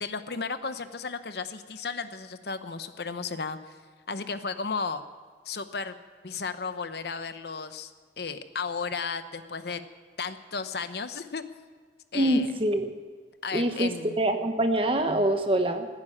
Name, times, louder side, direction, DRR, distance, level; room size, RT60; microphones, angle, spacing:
voice 1, 0.0-3.8 4.1-5.0 5.4-5.9 6.2-7.9 8.2-9.8 10.2-11.4 12.1-12.5 13.4-14.1, left 5 dB, 60° left, 11 dB, 0.8 m, -34 dB
voice 2, 12.1-12.9 13.5-13.9 14.2-15.9, right 1 dB, 30° right, 6 dB, 1.2 m, -24 dB
15.5 x 9.9 x 8.6 m, 1.5 s
head